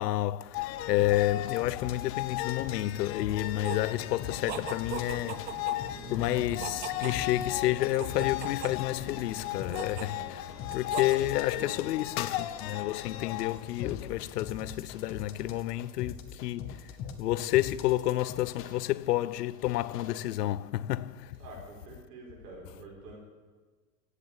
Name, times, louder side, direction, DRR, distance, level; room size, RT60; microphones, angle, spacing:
voice 1, 0.0-5.6 6.1-16.9 17.2-21.4, left 15 dB, 85° left, 0.8 m, -30 dB
sound 1, 0.5-14.5, left 15 dB, 45° left, 0.8 m, -37 dB
sound 2, 1.0-3.7 4.2-5.5 5.8-18.8 19.3-20.2, left 8 dB, 30° left, 1.2 m, -42 dB
sound 3, 3.6-11.2, right 9 dB, 20° right, 0.6 m, -42 dB
voice 2, 21.4-23.2, right 3 dB, 85° right, 6.3 m, -47 dB
15.5 x 8.5 x 9.2 m
supercardioid pair, 160°, 47 cm